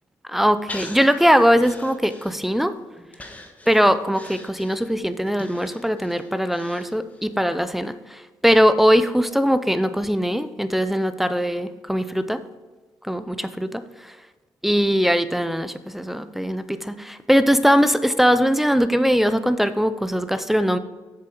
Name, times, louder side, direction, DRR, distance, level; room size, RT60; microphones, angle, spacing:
voice 1, 0.3-2.7 3.7-7.9 8.4-12.4 13.1-13.8 14.6-20.8, equal, 5° right, 12 dB, 0.5 m, -20 dB
Breathing, 0.7-2.7 3.1-7.3 7.7-7.8, left 2 dB, 20° left, 1.3 m, -42 dB
7.7 x 7.0 x 4.7 m, 1.3 s
cardioid pair, 85°, 7 cm